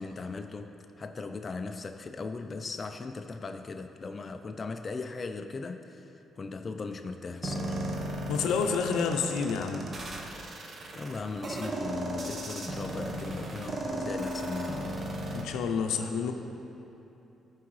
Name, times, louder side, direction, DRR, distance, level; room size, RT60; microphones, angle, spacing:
voice 1, 0.0-7.8 11.0-14.9, left 3 dB, 35° left, 7 dB, 0.4 m, -38 dB
sound 1, 7.4-15.4, right 1 dB, 40° right, 0.9 m, -35 dB
voice 2, 8.3-9.9 15.3-16.3, left 5 dB, 85° left, 5 dB, 0.5 m, -29 dB
14.0 x 4.7 x 3.1 m, 2.9 s
cardioid pair, 90°, 0 cm